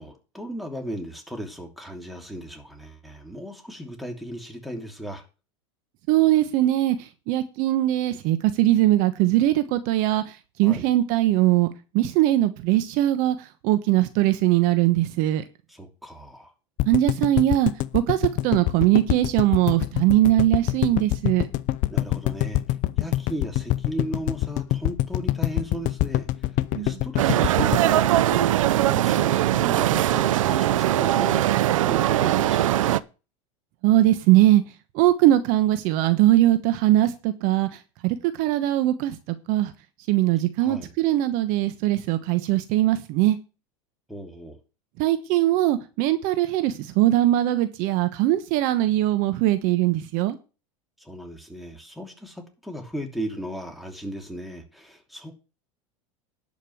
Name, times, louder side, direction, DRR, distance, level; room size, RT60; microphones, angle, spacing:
voice 1, 0.0-5.2 10.6-10.9 15.7-16.5 21.9-22.6 23.0-33.0 40.6-40.9 44.1-44.6 51.0-55.3, equal, ahead, 2.9 m, -36 dB
voice 2, 6.1-7.0 7.3-10.2 10.6-11.7 11.9-13.3 13.6-15.4 16.9-21.5 26.7-27.0 33.8-34.6 34.9-37.7 38.0-39.2 39.5-39.7 40.1-43.4 45.0-50.4, right 14 dB, 60° right, 1.1 m, -21 dB
sound 1, 16.8-28.9 29.2-29.3 29.5-29.6, left 16 dB, 50° left, 0.7 m, -25 dB
sound 2, 27.2-33.0, right 13 dB, 85° right, 0.6 m, -21 dB
11.5 x 5.3 x 7.9 m
supercardioid pair, 105°, 16 cm